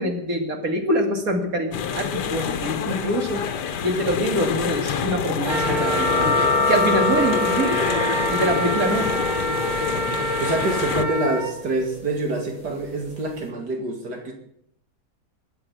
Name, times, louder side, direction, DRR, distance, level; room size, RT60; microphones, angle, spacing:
voice 1, 0.0-3.4 3.8-7.8 8.3-9.1, right 1 dB, 55° right, 4 dB, 2.8 m, -25 dB
sound 1, 1.7-11.0, left 7 dB, 85° left, 1.6 m, -27 dB
Wind instrument woodwind instrument, 5.5-11.5, right 2 dB, 40° right, 1.7 m, -27 dB
sound 2, 5.6-12.8, left 4 dB, 20° left, 6.6 m, -27 dB
voice 2, 10.1-14.3, right 2 dB, 80° right, 2 dB, 2.8 m, -26 dB
22.0 x 7.7 x 7.3 m, 0.72 s
omnidirectional pair, 1.8 m